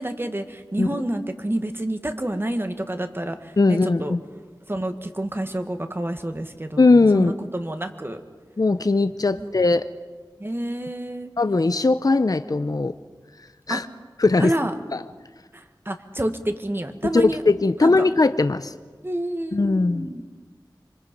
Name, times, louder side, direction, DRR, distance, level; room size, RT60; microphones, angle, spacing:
voice 1, 0.0-4.1 4.7-6.8 7.1-8.2 9.3-9.5 10.4-11.3 13.7-13.8 14.4-14.7 15.5-17.4 17.8-18.1 19.0-20.3, right 1 dB, 30° right, 7 dB, 1.6 m, -29 dB
voice 2, 3.6-4.2 6.8-7.3 8.6-9.9 11.4-12.9 13.7-13.9 14.2-14.5 14.9-15.0 17.1-18.7 19.5-20.1, left 3 dB, 55° left, 11 dB, 0.6 m, -19 dB
26.5 x 25.0 x 5.3 m, 1.5 s
wide cardioid pair, 55°, 8 cm